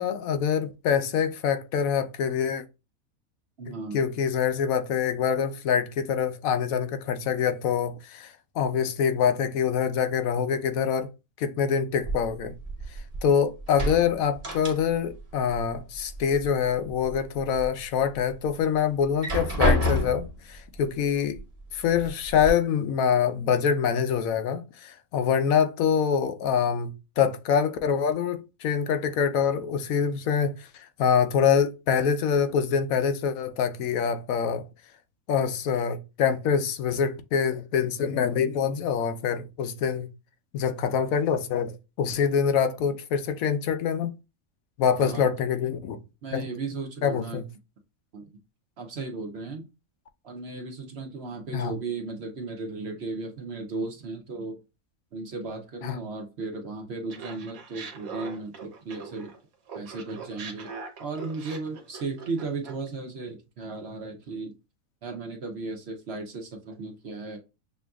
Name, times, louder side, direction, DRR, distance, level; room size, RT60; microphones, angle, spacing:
voice 1, 0.0-2.6 3.7-11.1 11.4-12.5 13.2-21.4 21.7-30.5 31.0-34.6 35.3-40.1 40.5-44.1 44.8-46.0 46.3-46.4 47.0-47.4 51.5-51.7 55.8-56.0, left 7 dB, 80° left, 1.0 m, -25 dB
voice 2, 3.6-4.0 45.0-45.3 46.2-47.4 48.1-48.3 48.8-49.7 50.2-54.6 55.1-59.3 59.7-60.7 61.0-64.5 65.0-67.4, right 3 dB, 55° right, 0.9 m, -35 dB
sound 1, 12.0-13.3 13.6-15.2 15.5-16.5 16.9-17.7 18.1-18.2 19.0-20.4 21.4-21.5 21.9-22.5, equal, 30° right, 1.2 m, -28 dB
Laughter, 57.1-59.4 59.7-62.9, right 5 dB, 80° right, 1.3 m, -41 dB
6.6 x 2.5 x 2.3 m
omnidirectional pair, 1.4 m